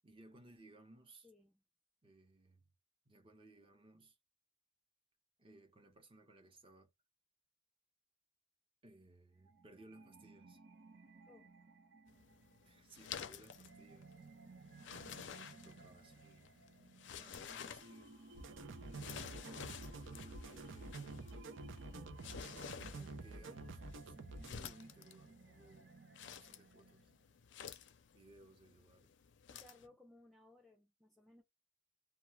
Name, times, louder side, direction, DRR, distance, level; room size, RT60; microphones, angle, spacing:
voice 1, 0.0-1.3 2.0-2.7 3.1-4.2 5.4-6.9 8.8-10.6 12.6-14.1 14.9-16.7 17.2-18.2 19.2-21.4 22.2-26.0 26.3-27.1 28.1-29.1, right 2 dB, 25° right, 0.8 m, -62 dB
voice 2, 1.2-1.6 11.3-11.5 14.6-14.7 29.5-31.4, left 2 dB, ahead, 0.4 m, -63 dB
sound 1, 9.4-27.3, right 3 dB, 55° right, 1.0 m, -59 dB
sound 2, 12.1-29.9, left 8 dB, 70° left, 0.5 m, -53 dB
sound 3, 18.3-24.5, right 3 dB, 85° right, 0.6 m, -49 dB
2.3 x 2.3 x 3.1 m
head